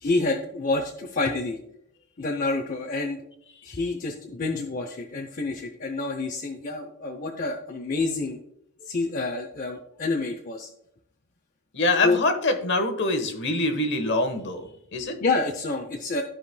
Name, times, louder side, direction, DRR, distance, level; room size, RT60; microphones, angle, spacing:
voice 1, 0.0-1.6 2.2-3.2 3.6-8.4 8.8-10.7 12.0-12.2 15.2-16.2, left 3 dB, 40° left, 2 dB, 0.7 m, -28 dB
voice 2, 11.7-15.2, left 2 dB, 55° left, 7 dB, 1.1 m, -25 dB
14.0 x 5.0 x 2.2 m, 0.73 s
head